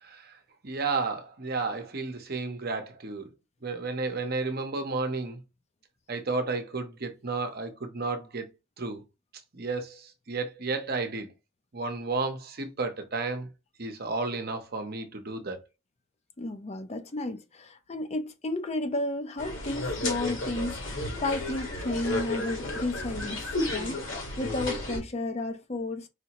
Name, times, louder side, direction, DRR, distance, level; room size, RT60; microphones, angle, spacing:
voice 1, 0.0-0.4 0.6-3.3 3.6-5.4 6.1-8.5 8.8-9.0 9.5-11.3 11.7-13.5 13.8-15.7, right 3 dB, 45° right, 0.8 m, -32 dB
voice 2, 16.4-24.1 24.4-26.1, left 2 dB, 30° left, 0.6 m, -33 dB
sound 1, 19.4-25.0, left 2 dB, 65° left, 1.5 m, -32 dB
5.0 x 2.7 x 2.9 m
head